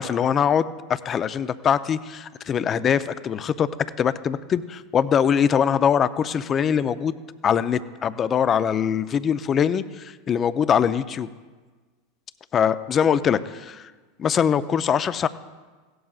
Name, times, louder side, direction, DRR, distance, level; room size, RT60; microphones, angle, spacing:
voice 1, 0.0-3.7 4.0-7.2 7.4-11.3 12.5-13.9 14.2-15.3, left 8 dB, 35° left, 13 dB, 0.5 m, -22 dB
16.5 x 12.5 x 2.4 m, 1.4 s
hypercardioid pair, 95°, 0 cm